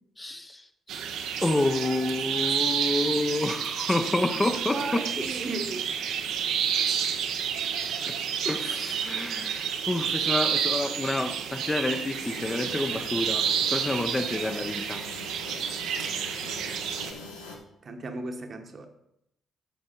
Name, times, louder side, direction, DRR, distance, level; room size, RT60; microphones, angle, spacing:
voice 1, 0.2-0.6 0.9-1.1 1.4-5.3 8.1-8.2 8.4-15.0, left 2 dB, 20° left, 7 dB, 0.9 m, -29 dB
sound 1, 0.9-17.1, right 8 dB, 70° right, 0.8 m, -30 dB
voice 2, 4.7-5.9 17.8-18.9, right 3 dB, 45° right, 5 dB, 1.2 m, -35 dB
sound 2, 12.1-17.6, left 2 dB, 90° left, 1.2 m, -42 dB
9.3 x 6.4 x 4.3 m, 0.81 s
hypercardioid pair, 45°, 0 cm